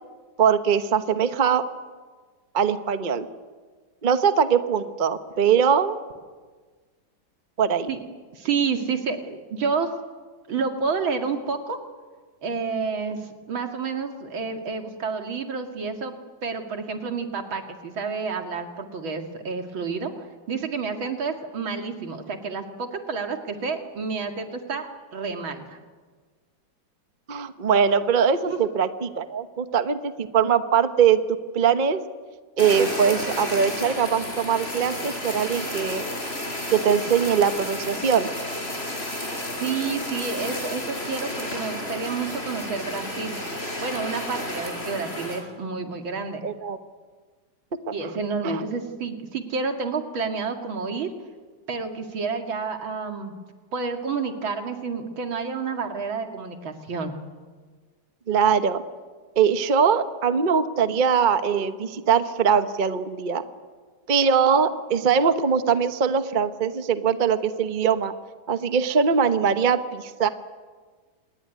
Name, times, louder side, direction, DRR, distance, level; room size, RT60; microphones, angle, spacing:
voice 1, 0.4-1.6 2.5-3.3 4.0-6.0 7.6-7.9 27.3-31.2 31.5-32.0 32.6-36.0 36.7-38.3 46.4-46.8 48.4-48.6 58.3-58.8 59.4-63.4 64.1-68.1 68.5-70.3, right 7 dB, 30° right, 10 dB, 1.0 m, -21 dB
voice 2, 8.3-9.9 10.5-11.8 12.4-16.1 16.4-25.8 28.5-28.6 39.6-43.3 43.8-46.4 47.9-51.1 51.7-53.3 53.7-57.2, right 5 dB, 80° right, 5 dB, 3.0 m, -29 dB
Fire, 32.6-45.4, left 1 dB, 30° left, 5.2 m, -32 dB
27.0 x 20.5 x 9.6 m, 1.4 s
omnidirectional pair, 2.2 m